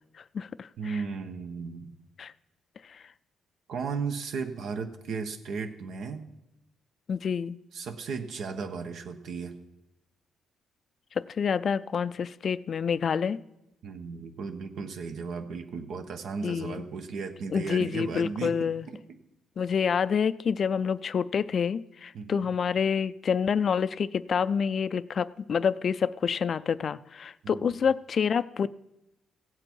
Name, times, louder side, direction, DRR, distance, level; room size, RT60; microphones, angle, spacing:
voice 1, 0.2-1.0 2.2-2.3 2.8-3.0 7.1-7.6 11.1-13.4 16.4-16.8 17.5-18.9 19.6-28.7, left 6 dB, 50° left, 16 dB, 0.4 m, -28 dB
voice 2, 0.8-1.9 3.7-6.2 7.7-9.5 13.8-18.7 22.1-22.5 27.4-27.8, right 5 dB, 70° right, 7 dB, 1.1 m, -35 dB
16.0 x 7.8 x 4.6 m, 0.91 s
cardioid pair, 90°, 0 cm